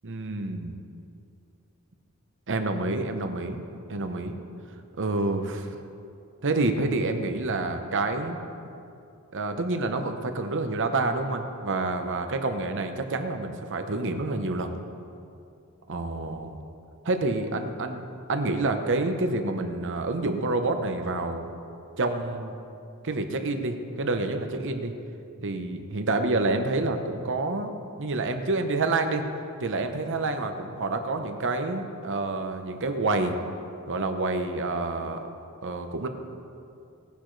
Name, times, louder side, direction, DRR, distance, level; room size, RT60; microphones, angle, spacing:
voice 1, 0.0-0.8 2.5-3.6 3.9-4.3 5.0-5.8 6.4-8.4 9.3-14.7 15.9-16.6 17.0-21.5 22.0-22.6 23.0-24.9 25.4-27.7 28.0-29.2 29.6-33.3 33.9-35.2 35.6-36.1, right 2 dB, 55° right, 6 dB, 0.9 m, -28 dB
18.0 x 10.5 x 3.3 m, 2.6 s
head